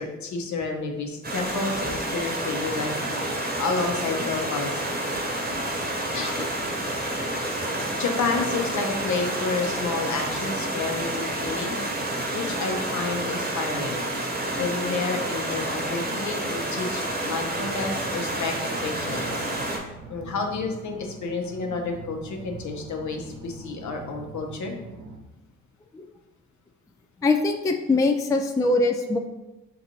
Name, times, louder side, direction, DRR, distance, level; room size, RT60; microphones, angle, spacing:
voice 1, 0.0-2.9 3.6-4.7 6.1-6.5 8.0-11.7 12.3-14.1 14.6-19.5 20.1-24.8 28.9-29.1, left 4 dB, 55° left, 3 dB, 0.9 m, -30 dB
Stream, 1.2-19.8, right 1 dB, 25° right, 1.1 m, -29 dB
sound 1, 3.7-4.3 4.9-7.3 7.7-9.9 10.2-10.5 10.9-11.0, right 2 dB, 60° right, 1.4 m, -47 dB
sound 2, 17.5-25.2, right 3 dB, 90° right, 0.7 m, -42 dB
voice 2, 27.2-29.2, left 3 dB, 10° left, 4 dB, 0.4 m, -22 dB
5.8 x 2.5 x 2.9 m, 1.0 s
hypercardioid pair, 45°, 34 cm